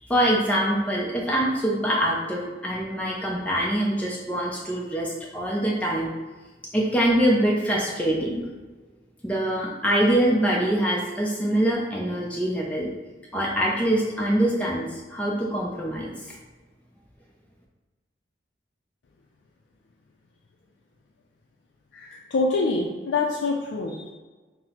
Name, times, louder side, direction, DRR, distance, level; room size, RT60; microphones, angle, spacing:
voice 1, 0.0-6.1 6.7-8.4 9.2-12.9 13.3-16.3, right 1 dB, 10° left, -4 dB, 0.4 m, -24 dB
voice 2, 21.9-24.1, left 3 dB, 80° left, -1 dB, 0.4 m, -26 dB
5.7 x 2.0 x 2.8 m, 1.3 s
head